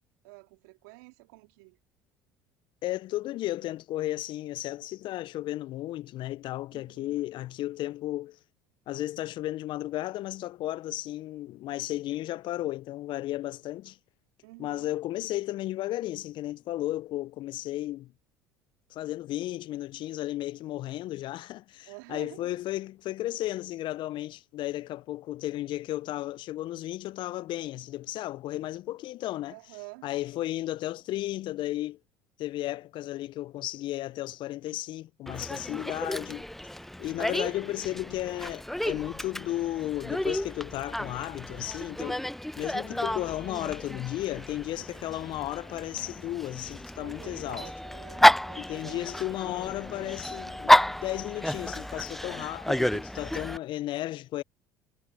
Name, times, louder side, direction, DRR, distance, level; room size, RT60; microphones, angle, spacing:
voice 1, 0.2-1.8 6.7-7.1 14.4-14.9 21.9-22.6 29.5-30.0 44.7-45.0 46.9-49.1, right 28 dB, 70° right, 2.5 m, -48 dB
voice 2, 2.8-8.4 8.9-14.0 14.6-18.1 18.9-29.6 30.0-32.0 32.4-36.4 37.0-42.3 42.6-47.7 48.5-54.4, left 15 dB, 55° left, 0.6 m, -34 dB
Dog, 35.3-53.6, left 1 dB, 5° left, 0.3 m, -30 dB
hypercardioid pair, 60°, 10 cm